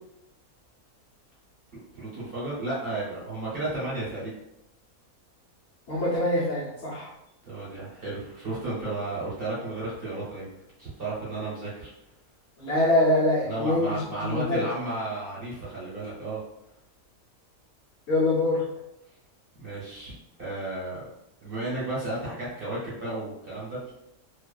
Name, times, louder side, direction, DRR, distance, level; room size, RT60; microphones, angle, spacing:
voice 1, 1.7-4.3 7.5-10.5 10.8-11.9 13.4-16.4 19.6-21.1 21.4-23.9, right 2 dB, 45° right, -8 dB, 1.0 m, -33 dB
voice 2, 5.9-7.1 12.6-14.6 18.1-18.6, left 1 dB, 55° left, -8 dB, 0.8 m, -24 dB
2.5 x 2.3 x 2.2 m, 0.82 s
omnidirectional pair, 1.5 m